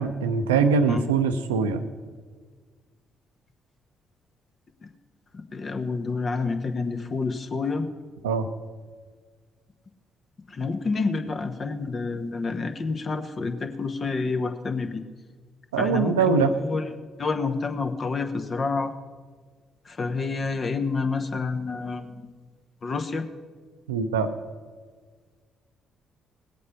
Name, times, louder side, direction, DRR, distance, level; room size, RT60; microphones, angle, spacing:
voice 1, 0.0-1.9 8.2-8.5 15.7-16.5 23.9-24.3, right 5 dB, 80° right, 8 dB, 0.6 m, -22 dB
voice 2, 5.3-7.9 10.5-15.0 15.8-16.9 17.2-18.9 19.9-22.3 22.8-23.3, left 4 dB, 40° left, 7 dB, 1.2 m, -28 dB
18.5 x 8.3 x 5.6 m, 1.5 s
figure-of-eight pair, 45°, 0 cm